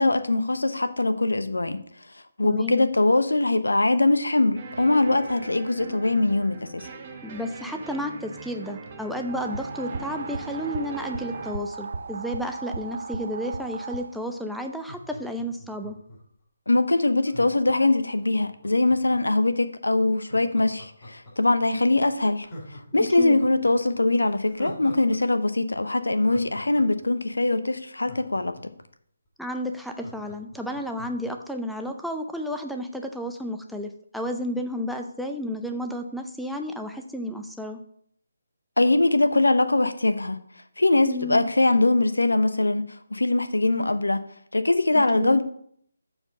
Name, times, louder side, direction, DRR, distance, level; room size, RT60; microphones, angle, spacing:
voice 1, 0.0-1.8 2.4-6.9 16.7-22.5 22.9-28.6 38.8-40.4 40.8-42.8 43.1-44.2 44.5-45.4, left 2 dB, 85° left, 10 dB, 0.8 m, -22 dB
voice 2, 2.4-2.9 7.2-16.0 23.2-23.4 29.4-37.8 41.0-41.4 44.9-45.4, equal, ahead, 2 dB, 0.5 m, -32 dB
sound 1, 4.6-11.5, right 3 dB, 35° right, 1.1 m, -41 dB
sound 2, 9.3-14.4, right 4 dB, 55° right, 0.5 m, -36 dB
Laughter, 14.7-16.4 17.2-19.4 20.2-21.6 21.9-22.0 22.4-25.2 25.4-25.5 25.9-28.8 29.3-29.4 29.6-31.3 31.7-31.8, left 1 dB, 30° left, 3.6 m, -44 dB
7.1 x 4.4 x 6.5 m, 0.65 s
figure-of-eight pair, 150°, 0 cm